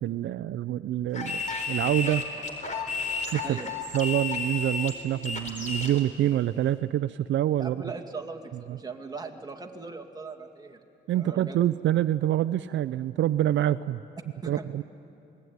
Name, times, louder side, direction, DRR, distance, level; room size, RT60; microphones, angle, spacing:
voice 1, 0.0-2.2 3.3-3.6 3.9-7.8 8.7-8.8 11.1-14.0 14.5-14.8, right 12 dB, 70° right, 12 dB, 0.6 m, -26 dB
sound 1, 1.1-6.0, left 4 dB, 40° left, 4.1 m, -32 dB
voice 2, 7.6-10.8 11.1-11.6 14.4-14.8, right 4 dB, 20° right, 3 dB, 2.3 m, -39 dB
27.0 x 20.0 x 9.5 m, 2.9 s
cardioid pair, 90°, 20 cm